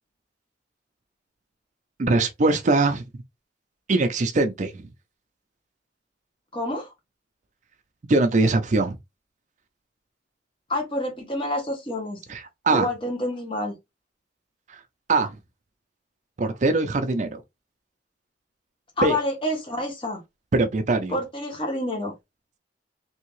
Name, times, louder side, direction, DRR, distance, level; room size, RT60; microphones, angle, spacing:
voice 1, 2.0-3.0 3.9-4.7 8.1-9.0 12.3-12.9 14.7-14.8 15.1-15.3 16.4-17.4 19.0-19.2 20.5-21.2, right 3 dB, 40° right, 0.4 m, -22 dB
voice 2, 6.5-6.9 10.7-12.2 12.7-13.8 19.0-20.2 21.1-22.1, left 1 dB, 30° left, 1.0 m, -28 dB
3.4 x 2.7 x 3.0 m
head